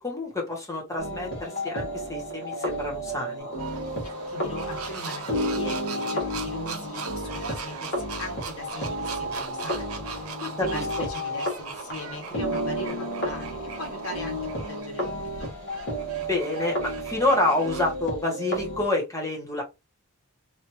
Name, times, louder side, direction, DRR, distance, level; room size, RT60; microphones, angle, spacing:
voice 1, 0.0-3.5 10.6-10.8 16.3-19.6, left 2 dB, 15° left, 1.0 m, -28 dB
sound 1, 1.0-11.9 12.2-18.9, equal, 50° left, 1.4 m, -32 dB
sound 2, 3.4-14.8, right 1 dB, 50° right, 1.0 m, -42 dB
sound 3, 3.6-18.0, right 6 dB, 75° right, 0.6 m, -40 dB
voice 2, 4.0-15.6, left 1 dB, 70° left, 1.4 m, -40 dB
2.9 x 2.5 x 2.9 m
head